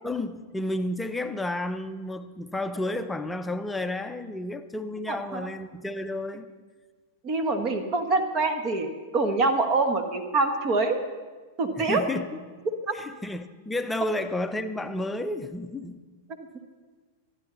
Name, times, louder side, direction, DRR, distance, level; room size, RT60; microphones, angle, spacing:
voice 1, 0.0-6.5 11.8-12.3 12.9-16.0, left 1 dB, 5° left, 0.7 m, -31 dB
voice 2, 5.1-5.5 7.2-8.9 9.1-11.0 11.6-12.0 12.9-13.0, right 3 dB, 35° right, 1.4 m, -25 dB
24.5 x 10.5 x 4.0 m
figure-of-eight pair, 95°, 0 cm